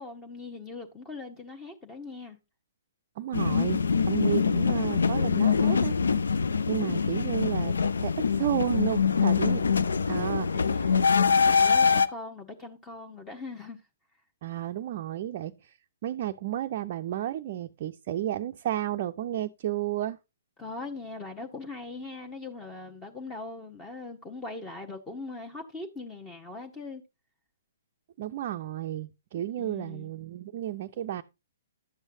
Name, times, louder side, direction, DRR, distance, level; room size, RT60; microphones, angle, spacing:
voice 1, 0.0-2.4 10.5-13.8 20.6-27.0 29.3-30.1, left 3 dB, 15° left, 1.0 m, -41 dB
voice 2, 3.2-6.0 6.7-9.6 10.1-10.5 14.4-15.7 16.0-20.2 28.2-31.2, right 12 dB, 40° right, 0.5 m, -32 dB
sound 1, 3.3-12.1, left 6 dB, 65° left, 0.6 m, -24 dB
11.5 x 8.0 x 2.7 m
figure-of-eight pair, 120°, 0 cm